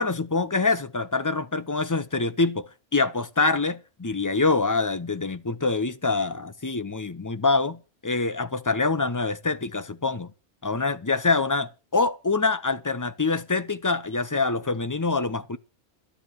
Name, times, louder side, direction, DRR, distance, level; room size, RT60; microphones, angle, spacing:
voice 1, 0.0-10.3 10.6-15.6, left 3 dB, 20° left, 0.7 m, -25 dB
12.5 x 10.0 x 6.4 m
omnidirectional pair, 1.2 m